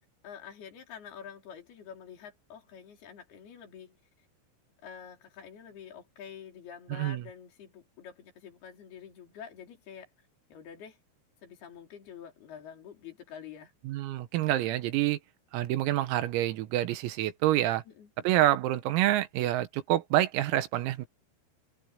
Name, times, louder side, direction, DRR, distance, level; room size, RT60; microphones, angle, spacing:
voice 1, 0.2-4.3 4.8-11.0 11.4-13.7 17.9-18.3, left 8 dB, 50° left, 5.8 m, -47 dB
voice 2, 13.9-15.2 15.5-17.8 18.3-21.1, right 14 dB, 85° right, 4.1 m, -27 dB
omnidirectional pair, 6.0 m